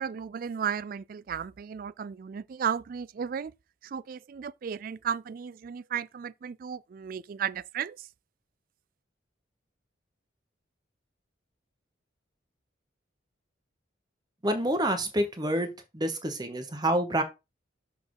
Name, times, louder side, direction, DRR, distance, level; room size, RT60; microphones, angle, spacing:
voice 1, 0.0-3.5 3.8-8.1, right 7 dB, 45° right, 0.3 m, -34 dB
voice 2, 14.4-15.7 15.9-17.2, right 1 dB, 20° right, 1.0 m, -27 dB
6.7 x 4.2 x 4.7 m
head